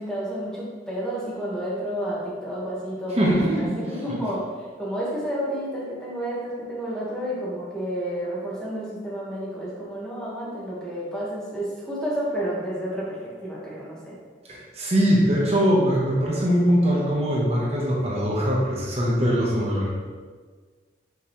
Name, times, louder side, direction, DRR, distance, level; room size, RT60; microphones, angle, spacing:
voice 1, 0.0-14.2, equal, 5° left, -7 dB, 1.7 m, -30 dB
voice 2, 3.1-3.7 14.5-19.9, equal, 35° right, -4 dB, 1.2 m, -22 dB
6.4 x 5.9 x 3.2 m, 1.5 s
head